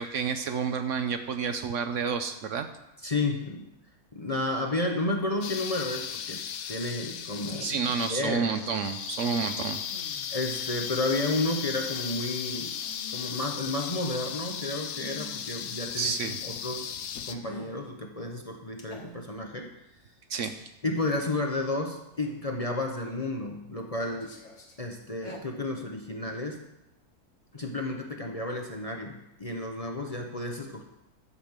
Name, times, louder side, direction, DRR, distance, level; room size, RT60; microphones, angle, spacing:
voice 1, 0.0-2.7 7.6-9.8 16.0-16.4 20.3-20.7, right 6 dB, 65° right, 8 dB, 0.9 m, -30 dB
voice 2, 3.0-3.7 4.1-6.4 6.7-8.5 10.3-12.7 13.1-16.1 16.4-16.9 17.2-19.7 20.8-24.3 24.8-26.6 27.5-30.8, left 2 dB, 30° left, 2 dB, 0.8 m, -32 dB
sound 1, 5.4-17.3, left 8 dB, 70° left, 1.1 m, -36 dB
sound 2, 9.9-10.3 12.7-13.2 14.9-15.5 17.4-17.8 18.8-19.4 20.4-20.5 22.2-22.4 23.2-23.6 24.0-24.8 25.1-25.4, left 3 dB, 55° left, 1.8 m, -47 dB
11.0 x 5.2 x 7.3 m, 0.90 s
omnidirectional pair, 1.5 m